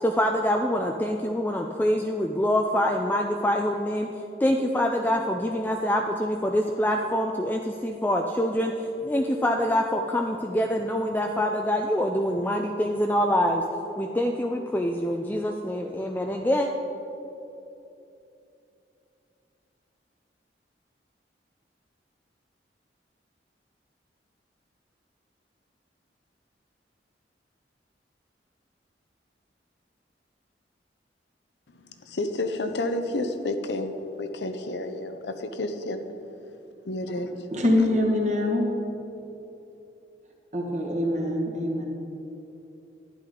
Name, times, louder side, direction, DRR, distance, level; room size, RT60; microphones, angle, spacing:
voice 1, 0.0-4.1 4.4-13.6 14.0-16.7, equal, 10° left, 3 dB, 0.4 m, -25 dB
voice 2, 31.8-36.0 36.9-37.3, left 2 dB, 80° left, 7 dB, 0.7 m, -30 dB
voice 3, 37.5-38.7 40.5-41.8, left 1 dB, 40° right, 0 dB, 1.6 m, -24 dB
11.5 x 10.0 x 3.8 m, 2.9 s
head